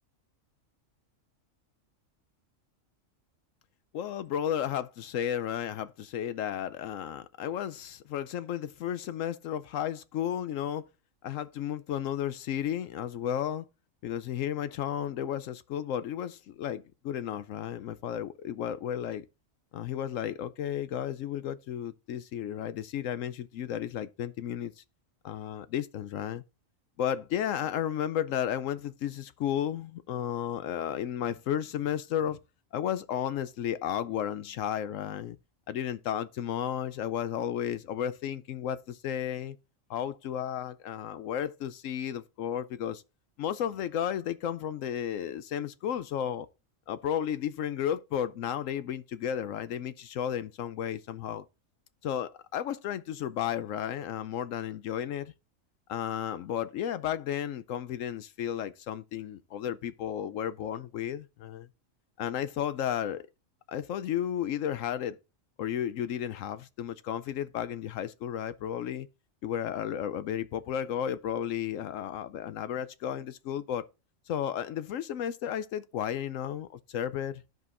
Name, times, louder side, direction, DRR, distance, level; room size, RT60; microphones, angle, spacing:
voice 1, 3.9-10.8 11.2-13.7 14.0-19.3 19.7-24.8 25.2-26.4 27.0-32.4 32.7-35.4 35.7-39.6 39.9-43.0 43.4-46.5 46.9-51.4 52.0-55.3 55.9-61.7 62.2-63.2 63.7-65.2 65.6-69.1 69.4-73.8 74.3-77.4, left 10 dB, 75° left, 0.9 m, -33 dB
13.5 x 5.2 x 2.5 m
omnidirectional pair, 1.4 m